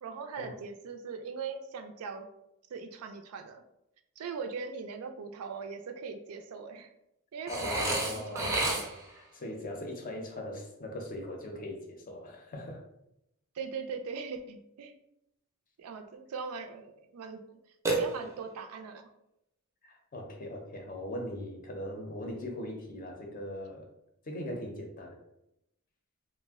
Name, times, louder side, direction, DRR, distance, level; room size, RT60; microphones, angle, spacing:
voice 1, 0.0-2.3 2.7-3.6 4.2-6.9 7.3-9.0 13.5-14.9 15.8-17.4 17.9-19.1, right 5 dB, 85° right, 6 dB, 0.4 m, -40 dB
voice 2, 7.5-8.6 9.3-12.8 19.8-23.9 24.3-25.2, left 1 dB, 40° left, 1 dB, 0.5 m, -40 dB
Burping eructation, 7.5-9.2 17.8-18.6, right 2 dB, 15° right, 0.4 m, -31 dB
2.4 x 2.1 x 3.4 m, 0.82 s
head